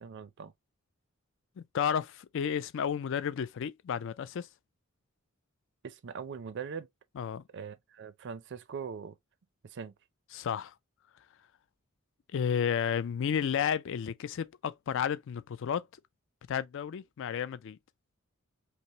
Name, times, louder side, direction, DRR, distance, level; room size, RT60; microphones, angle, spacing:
voice 1, 0.0-0.5 5.8-6.9 7.5-9.2 9.6-9.9, right 6 dB, 55° right, 0.5 m, -41 dB
voice 2, 1.6-4.5 7.2-7.4 10.3-10.7 12.3-15.9 16.5-17.8, left 8 dB, 65° left, 0.4 m, -32 dB
5.4 x 2.0 x 2.8 m
head